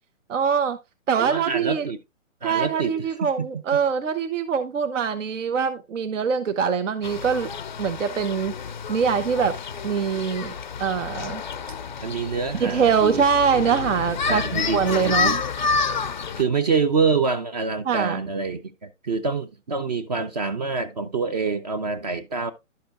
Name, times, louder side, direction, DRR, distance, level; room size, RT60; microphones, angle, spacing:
voice 1, 0.3-0.8 1.1-1.9 2.4-7.5 7.8-8.5 8.9-9.5 9.8-10.5 10.8-11.4 12.6-15.4 17.8-18.2, right 6 dB, 70° right, 1.0 m, -23 dB
voice 2, 1.2-2.0 2.4-2.9 3.2-3.5 12.0-13.2 14.3-15.4 16.4-22.5, right 4 dB, 30° right, 0.6 m, -26 dB
sound 1, 7.0-16.4, left 5 dB, 40° left, 0.4 m, -29 dB
11.5 x 6.7 x 2.5 m
hypercardioid pair, 160°, 39 cm